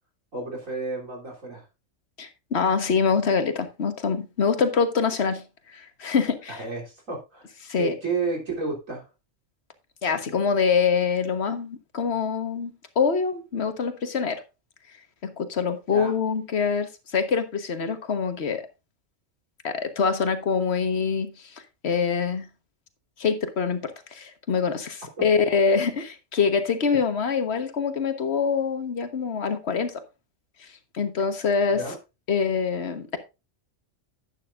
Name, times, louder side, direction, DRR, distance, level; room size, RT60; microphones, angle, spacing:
voice 1, 0.3-1.6 6.5-7.5 7.7-9.1 15.9-16.1 31.7-32.0, right 3 dB, 80° right, 3.8 m, -31 dB
voice 2, 2.2-6.6 7.6-7.9 10.0-14.4 15.2-18.7 19.6-22.5 23.2-30.0 30.6-30.7 30.9-31.8 32.3-33.2, left 5 dB, 55° left, 1.5 m, -25 dB
11.5 x 9.2 x 2.5 m
omnidirectional pair, 1.4 m